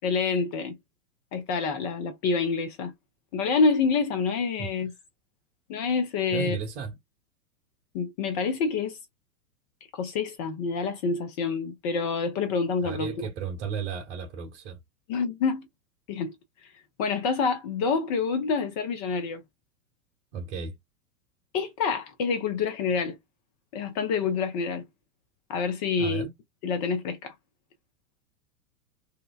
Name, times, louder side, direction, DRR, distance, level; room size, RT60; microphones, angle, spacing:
voice 1, 0.0-0.7 1.3-2.9 3.3-4.9 5.7-6.6 7.9-9.0 9.9-13.1 15.1-15.7 16.1-16.3 17.0-19.4 21.5-23.2 23.7-24.8 25.5-26.3 26.6-27.3, left 5 dB, 25° left, 0.5 m, -27 dB
voice 2, 6.3-6.9 12.8-14.8 20.3-20.7 26.0-26.3, right 6 dB, 45° right, 1.1 m, -34 dB
2.8 x 2.1 x 2.2 m
figure-of-eight pair, 100°, 47 cm